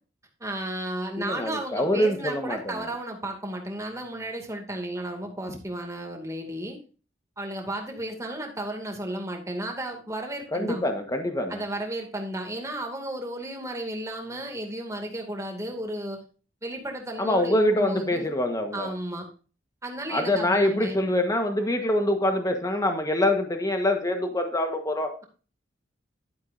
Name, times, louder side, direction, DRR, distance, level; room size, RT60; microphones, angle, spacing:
voice 1, 0.4-6.8 7.4-10.8 11.5-16.2 16.6-18.3 18.7-19.3 19.8-21.1, right 1 dB, 15° right, 2 dB, 2.4 m, -33 dB
voice 2, 1.2-2.9 10.5-11.6 17.2-18.9 20.1-25.1, left 1 dB, 20° left, 5 dB, 1.3 m, -25 dB
11.5 x 9.3 x 2.7 m, 0.36 s
head